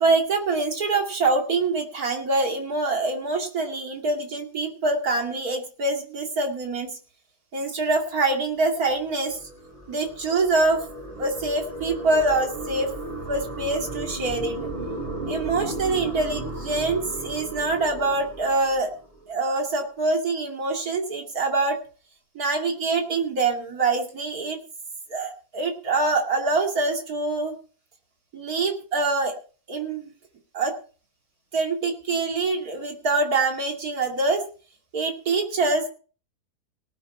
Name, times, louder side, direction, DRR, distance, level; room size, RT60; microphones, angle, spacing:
voice 1, 0.0-6.9 7.5-9.4 9.9-10.8 11.2-12.9 13.3-14.6 15.3-18.9 19.3-21.8 22.3-24.6 25.1-27.6 28.3-29.3 29.7-30.1 30.5-30.7 31.5-34.4 34.9-35.9, right 3 dB, 80° right, 3 dB, 2.9 m, -25 dB
sound 1, 8.7-19.3, right 2 dB, 20° right, 4.7 m, -35 dB
18.5 x 9.5 x 4.3 m, 0.39 s
omnidirectional pair, 1.6 m